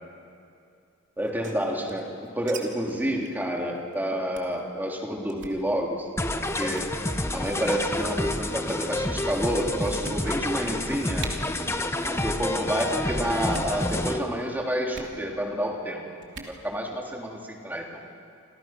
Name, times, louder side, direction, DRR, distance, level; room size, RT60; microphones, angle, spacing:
voice 1, 1.2-6.1 6.6-6.9 7.3-11.3 12.0-16.0 16.6-18.0, equal, 10° right, -1 dB, 3.4 m, -29 dB
sound 1, 1.2-2.6 2.9-3.0 3.2-3.4 3.8-3.9 4.3-4.6 5.3-5.6 6.2-6.4 6.7-6.9 7.8-8.2 9.0-9.1 9.5-9.6 10.0-10.6 10.9-11.0 11.2-11.3 12.0-12.3 12.5-12.9 13.4-13.8 14.9-15.2 16.2-16.6, right 5 dB, 60° right, 3.0 m, -41 dB
sound 2, 6.2-14.2, left 1 dB, 15° left, 1.0 m, -29 dB
28.5 x 27.5 x 6.1 m, 2.4 s
head